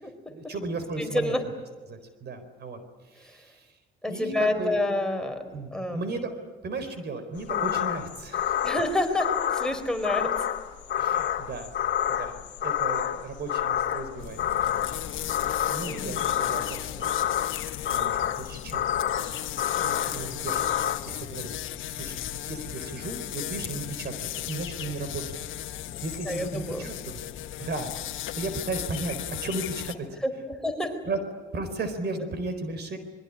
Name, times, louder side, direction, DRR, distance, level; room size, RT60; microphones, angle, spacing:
voice 1, 0.3-1.4 1.9-2.8 3.1-3.7 4.0-4.8 5.5-6.3 6.6-8.7 11.0-11.7 12.1-15.4 15.7-17.6 17.9-19.0 19.8-20.7 21.1-21.5 21.9-25.4 26.0-27.2 27.6-30.1 31.1-31.2 31.5-33.0, right 3 dB, 55° right, 10 dB, 4.3 m, -35 dB
voice 2, 1.0-1.4 3.2-3.4 4.0-5.4 5.7-6.1 7.5-7.7 8.6-10.3 15.9-16.2 26.3-26.9 30.2-30.9, left 1 dB, 5° left, 4 dB, 4.3 m, -28 dB
sound 1, 7.4-21.0, left 10 dB, 65° left, 1.7 m, -29 dB
sound 2, 14.2-30.0, left 12 dB, 80° left, 1.3 m, -36 dB
25.5 x 22.5 x 10.0 m, 1.3 s
cardioid pair, 90°, 20 cm